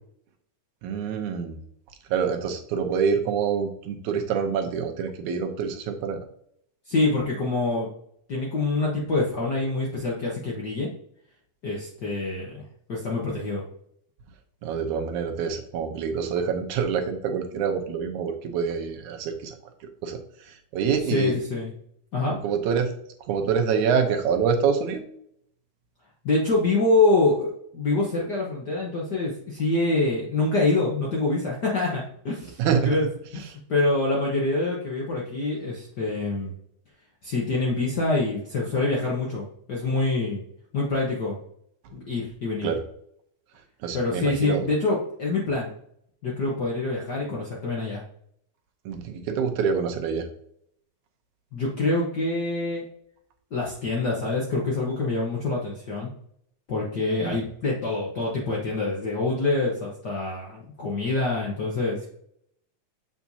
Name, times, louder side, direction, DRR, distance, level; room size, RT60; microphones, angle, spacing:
voice 1, 0.8-1.6 2.1-6.2 14.6-19.5 20.0-20.2 20.7-21.4 22.3-22.9 23.3-25.0 32.6-33.0 42.6-42.8 43.8-44.7 48.9-50.3 57.2-57.4, right 6 dB, 85° right, 5 dB, 2.3 m, -26 dB
voice 2, 6.9-7.9 8.3-10.9 11.6-12.6 12.9-13.6 21.1-21.7 22.1-22.4 26.2-32.6 32.8-33.0 33.3-36.5 37.2-40.4 40.7-41.4 41.9-42.7 43.9-45.7 46.2-48.0 51.5-52.8 53.5-56.1 56.7-62.1, left 2 dB, 55° left, -3 dB, 1.1 m, -25 dB
7.2 x 5.8 x 2.7 m, 0.68 s
omnidirectional pair, 3.4 m